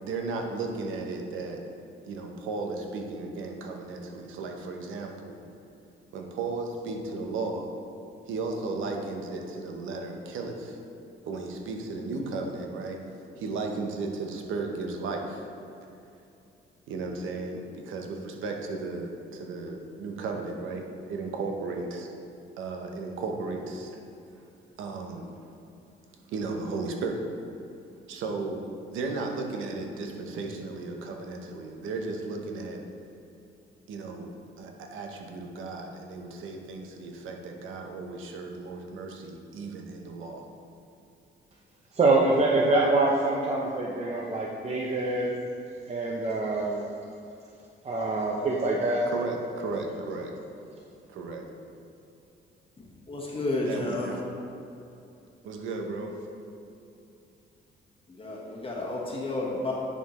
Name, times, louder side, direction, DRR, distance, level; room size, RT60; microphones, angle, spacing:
voice 1, 0.0-1.6 2.1-5.4 6.1-7.7 8.3-10.8 11.3-13.0 13.4-15.5 16.9-22.1 22.6-24.0 24.8-25.3 26.3-27.2 28.1-28.6 28.9-32.8 33.9-34.3 34.6-40.5 49.1-50.3 51.1-51.5 53.7-54.2 55.4-56.1, right 3 dB, 85° right, 2 dB, 0.9 m, -35 dB
voice 2, 41.9-45.4 45.9-46.9 47.8-49.0, right 2 dB, 35° right, -2 dB, 0.7 m, -25 dB
voice 3, 53.1-54.2 58.1-59.7, left 2 dB, 25° left, -3 dB, 1.2 m, -31 dB
10.0 x 4.4 x 3.1 m, 2.7 s
cardioid pair, 90°, 20 cm